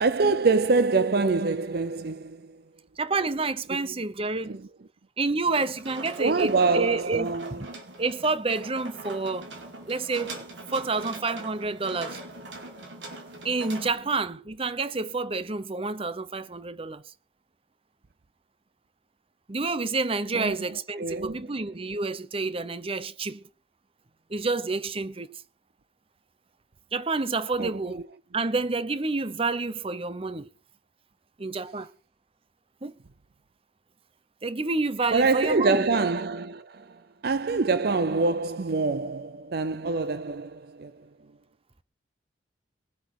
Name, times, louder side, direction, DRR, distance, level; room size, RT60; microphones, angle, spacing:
voice 1, 0.0-2.6 3.7-3.9 4.4-4.7 6.2-7.6 13.8-13.9 20.3-21.5 27.6-28.0 35.1-41.1, right 3 dB, 60° right, 0.6 m, -26 dB
voice 2, 3.0-4.5 5.2-7.3 8.0-9.5 9.9-10.4 10.7-12.2 13.4-17.0 19.5-23.4 24.3-25.4 26.9-28.0 28.3-30.5 31.4-31.9 32.8-32.9 34.4-35.8, right 3 dB, 30° right, 0.9 m, -29 dB
sound 1, 5.4-13.9, right 2 dB, 90° right, 4.3 m, -42 dB
21.5 x 8.0 x 6.1 m
head